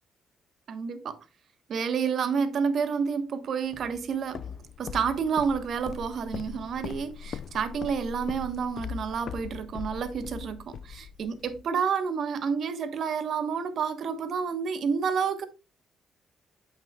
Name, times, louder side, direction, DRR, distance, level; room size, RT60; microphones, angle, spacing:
voice 1, 0.7-1.2 1.7-4.5 4.8-15.5, right 6 dB, 60° right, 1.2 m, -29 dB
Walk footsteps, 3.7-11.6, left 7 dB, 60° left, 0.5 m, -40 dB
8.5 x 7.3 x 2.3 m
cardioid pair, 90°, 0 cm